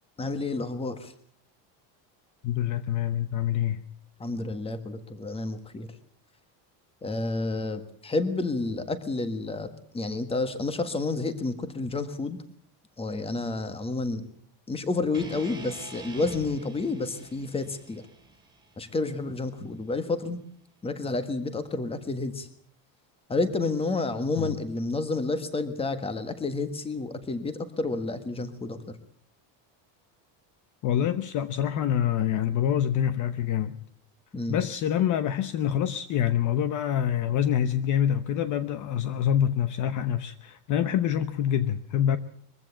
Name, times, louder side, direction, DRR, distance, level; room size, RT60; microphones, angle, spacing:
voice 1, 0.2-1.1 4.2-6.0 7.0-12.4 13.0-14.2 14.7-18.0 18.8-20.4 20.8-22.5 23.3-29.0 34.3-34.6, left 3 dB, 15° left, 11 dB, 1.6 m, -30 dB
voice 2, 2.4-3.8 24.4-24.5 30.8-33.8 34.5-42.2, left 10 dB, 40° left, 13 dB, 0.9 m, -26 dB
sound 1, 15.1-19.3, right 4 dB, 10° right, 3.3 m, -45 dB
22.5 x 15.5 x 8.6 m, 0.62 s
cardioid pair, 175°, 44 cm